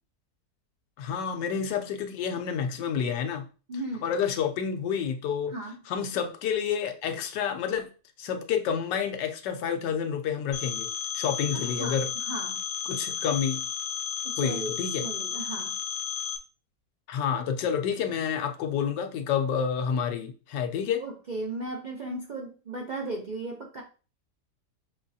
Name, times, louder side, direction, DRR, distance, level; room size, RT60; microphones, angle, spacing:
voice 1, 1.0-3.5 4.0-5.6 5.9-7.9 8.2-10.9 11.1-12.1 12.9-13.6 14.4-15.1 17.1-21.0, left 7 dB, 85° left, 1.3 m, -29 dB
voice 2, 3.7-4.1 5.5-5.8 11.5-12.6 14.2-15.8 21.0-23.8, right 2 dB, 85° right, 0.4 m, -36 dB
Telephone, 10.5-16.4, left 8 dB, 60° left, 0.5 m, -33 dB
6.3 x 3.1 x 2.6 m
omnidirectional pair, 1.8 m